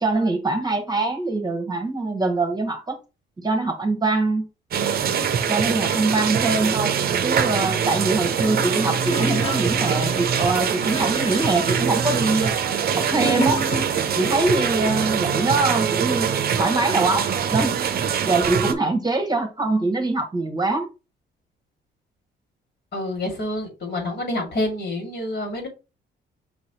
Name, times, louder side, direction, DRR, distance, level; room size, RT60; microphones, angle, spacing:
voice 1, 0.0-3.0 3.4-4.5 5.5-6.9 7.2-12.6 13.0-13.6 14.2-16.3 16.6-17.7 18.2-20.9, right 3 dB, 20° right, 1.1 m, -23 dB
sound 1, 4.7-18.7, right 7 dB, 50° right, 0.6 m, -23 dB
Gurgling / Toilet flush, 8.2-14.3 14.5-14.6, left 1 dB, 30° left, 1.0 m, -32 dB
voice 2, 22.9-25.7, left 1 dB, 55° left, 2.3 m, -27 dB
5.7 x 3.0 x 2.9 m
cardioid pair, 90°, 20 cm